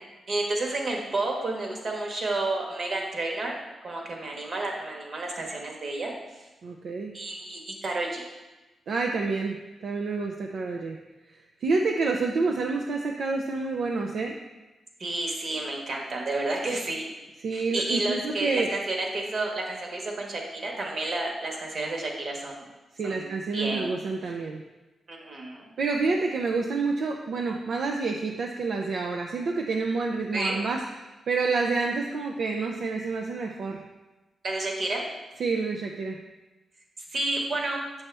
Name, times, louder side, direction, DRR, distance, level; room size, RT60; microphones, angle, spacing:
voice 1, 0.3-3.5 3.8-6.1 7.1-8.2 15.0-17.1 17.5-22.6 23.0-23.9 25.1-25.7 30.3-30.6 34.4-35.0 37.1-37.8, right 2 dB, 50° right, 0 dB, 1.3 m, -30 dB
voice 2, 6.6-7.1 8.9-9.6 9.8-11.0 11.6-14.3 17.4-18.7 22.9-24.6 25.8-30.8 31.3-33.8 35.4-36.2, right 4 dB, 70° right, 2 dB, 0.5 m, -28 dB
7.2 x 5.5 x 3.4 m, 1.1 s
cardioid pair, 105°, 0 cm